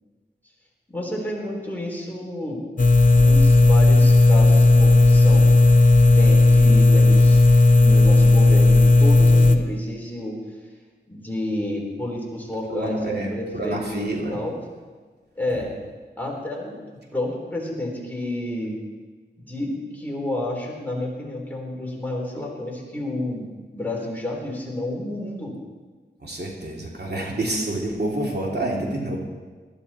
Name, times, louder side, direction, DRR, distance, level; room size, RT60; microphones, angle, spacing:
voice 1, 0.9-2.6 3.2-5.5 6.0-7.4 7.8-10.4 11.1-13.0 13.3-13.8 14.3-14.6 15.4-15.8 16.2-16.7 17.1-18.8 19.4-25.6, left 1 dB, 10° left, -2 dB, 3.8 m, -30 dB
sound 1, 2.8-9.6, left 2 dB, 45° left, 0.9 m, -14 dB
voice 2, 12.7-14.4 15.5-15.6 26.2-29.2, right 1 dB, 60° right, -2 dB, 2.9 m, -28 dB
19.5 x 12.5 x 4.3 m, 1.4 s
wide cardioid pair, 75°, 19 cm